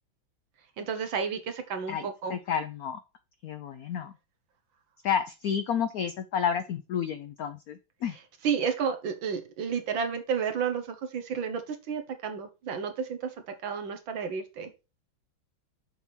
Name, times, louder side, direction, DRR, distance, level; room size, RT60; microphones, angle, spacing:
voice 1, 0.8-2.4 8.4-14.7, right 6 dB, 70° right, 7 dB, 1.8 m, -31 dB
voice 2, 1.9-3.0 3.4-4.1 5.0-8.2, left 8 dB, 85° left, 10 dB, 0.8 m, -31 dB
7.1 x 3.5 x 6.0 m, 0.29 s
omnidirectional pair, 2.2 m